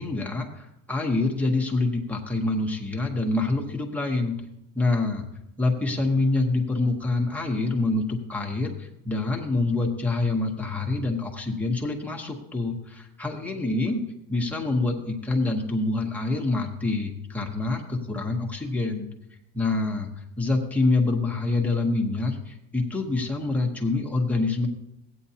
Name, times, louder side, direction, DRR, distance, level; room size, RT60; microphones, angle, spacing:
voice 1, 0.0-4.4 4.7-5.2 5.6-14.0 14.3-19.1 19.5-20.1 20.4-24.7, left 2 dB, 5° left, 0 dB, 0.9 m, -26 dB
16.0 x 9.2 x 2.8 m, 0.84 s
cardioid pair, 165°, 41 cm